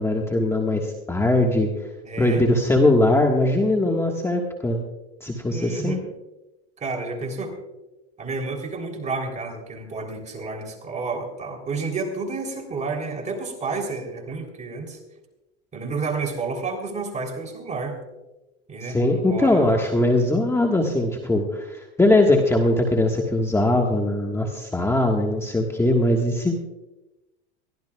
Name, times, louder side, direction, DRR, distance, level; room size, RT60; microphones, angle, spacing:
voice 1, 0.0-1.7 2.2-4.8 5.2-6.0 18.8-26.6, left 1 dB, 10° left, 1 dB, 1.5 m, -21 dB
voice 2, 2.0-2.5 5.5-6.0 6.8-7.6 8.2-15.0 15.7-18.0 18.7-19.7, right 4 dB, 25° right, 4 dB, 3.4 m, -30 dB
22.5 x 14.5 x 2.4 m, 0.99 s
supercardioid pair, 110°, 30 cm